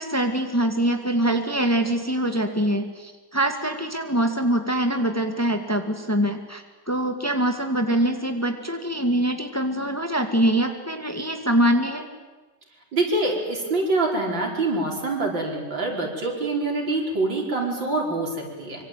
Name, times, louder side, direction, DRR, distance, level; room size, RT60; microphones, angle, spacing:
voice 1, 0.0-12.1, right 1 dB, 10° left, 5 dB, 2.1 m, -24 dB
voice 2, 12.9-18.9, right 2 dB, 80° right, 0 dB, 5.9 m, -25 dB
25.5 x 25.0 x 9.3 m, 1.3 s
omnidirectional pair, 2.0 m